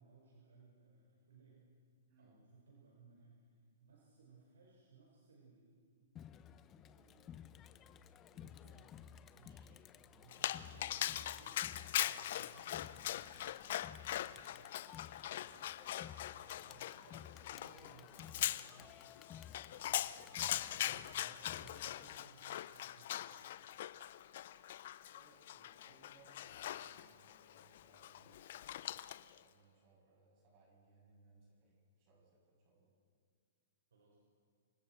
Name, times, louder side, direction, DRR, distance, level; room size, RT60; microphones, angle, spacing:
voice 1, 0.0-1.6 2.2-6.3 6.9-13.7 14.2-14.7 16.3-19.1 19.7-23.7 25.8-25.9 33.9-34.2, right 4 dB, 75° right, -3 dB, 5.3 m, -64 dB
Crowd, 6.2-22.2, left 9 dB, 25° left, 0.8 m, -55 dB
Dog, 10.3-29.4, left 12 dB, 55° left, 0.6 m, -42 dB
voice 2, 15.0-16.0 25.1-28.8 29.3-32.9, right 3 dB, 45° right, -3 dB, 7.9 m, -68 dB
28.5 x 25.5 x 4.6 m, 2.1 s
hypercardioid pair, 125°, 0 cm